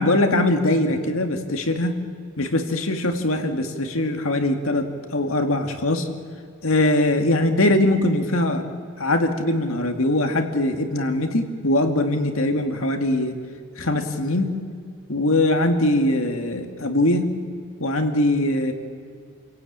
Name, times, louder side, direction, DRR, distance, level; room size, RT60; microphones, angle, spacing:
voice 1, 0.0-1.9 2.4-4.9 5.1-6.1 6.6-8.7 9.0-13.3 13.8-14.5 15.1-17.3 17.8-18.7, left 1 dB, 70° left, 5 dB, 2.1 m, -21 dB
28.5 x 17.0 x 8.8 m, 2.2 s
head